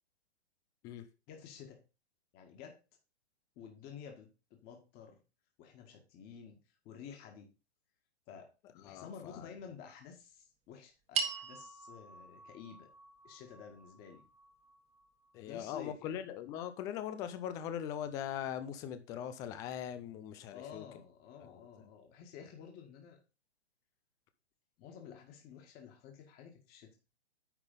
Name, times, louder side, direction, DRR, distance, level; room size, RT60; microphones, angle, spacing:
voice 1, 1.3-1.8 2.3-2.8 3.6-5.2 5.6-6.6 6.9-7.5 8.3-8.5 8.8-12.9 13.2-14.2 15.5-16.2 20.5-23.2 24.8-26.9, left 7 dB, 30° left, 1.8 m, -51 dB
voice 2, 8.8-9.5 15.3-20.8 21.5-21.6, left 10 dB, 10° left, 0.3 m, -41 dB
sound 1, 11.1-15.6, right 6 dB, 20° right, 1.4 m, -42 dB
10.0 x 3.9 x 5.3 m
hypercardioid pair, 130°, 33 cm